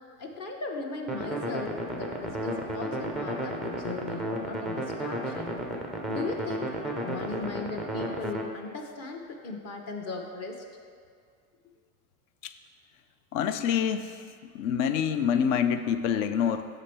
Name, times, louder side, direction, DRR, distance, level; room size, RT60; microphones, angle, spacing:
voice 1, 0.2-5.6 6.1-6.7 7.0-10.6, left 3 dB, 35° left, 1 dB, 0.8 m, -37 dB
sound 1, 1.1-8.4, right 1 dB, ahead, 0.3 m, -33 dB
voice 2, 13.3-14.1 14.5-16.7, left 8 dB, 60° left, 10 dB, 0.5 m, -26 dB
6.9 x 5.0 x 4.4 m, 2.1 s
supercardioid pair, 115°, 44 cm